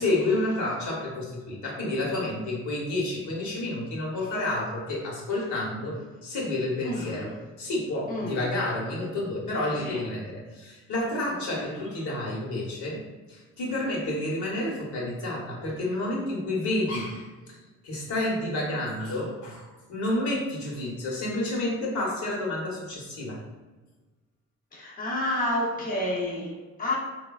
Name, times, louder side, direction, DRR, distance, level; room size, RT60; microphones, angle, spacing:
voice 1, 0.0-13.0 13.3-17.5 17.8-23.4, left 1 dB, 70° left, -4 dB, 1.0 m, -30 dB
voice 2, 6.8-7.3 8.1-8.4 9.7-10.0 11.6-11.8 24.7-27.0, left 1 dB, 30° left, -4 dB, 0.6 m, -30 dB
3.1 x 2.2 x 2.3 m, 1.3 s
cardioid pair, 90°, 30 cm